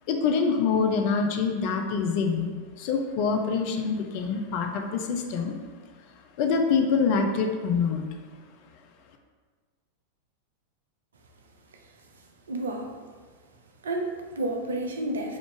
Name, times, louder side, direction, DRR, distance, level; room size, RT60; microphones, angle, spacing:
voice 1, 0.1-2.5 2.8-5.6 6.4-8.0, left 5 dB, 45° left, 4 dB, 0.4 m, -25 dB
voice 2, 12.5-13.0 13.8-15.4, right 1 dB, 70° right, 3 dB, 0.5 m, -30 dB
4.7 x 2.5 x 3.5 m, 1.5 s
figure-of-eight pair, 90°, 0 cm